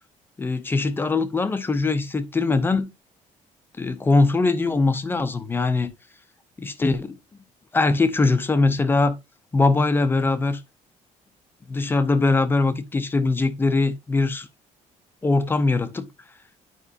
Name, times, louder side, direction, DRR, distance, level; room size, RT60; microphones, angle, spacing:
voice 1, 0.4-2.9 3.8-5.9 6.6-7.2 7.7-9.2 9.5-10.6 11.7-14.5 15.2-16.1, left 3 dB, 15° left, 0.7 m, -21 dB
9.7 x 5.3 x 2.6 m
cardioid pair, 175°, 14 cm